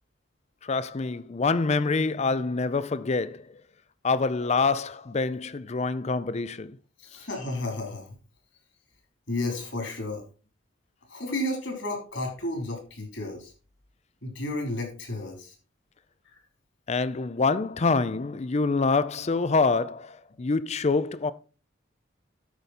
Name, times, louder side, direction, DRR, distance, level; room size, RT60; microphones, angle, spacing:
voice 1, 0.6-3.5 4.0-6.8 16.9-21.3, left 4 dB, 35° left, 0.5 m, -26 dB
voice 2, 7.0-8.1 9.3-10.2 11.1-13.5 14.2-15.5 16.3-16.4, left 1 dB, 65° left, 3.4 m, -32 dB
12.5 x 5.2 x 4.2 m
head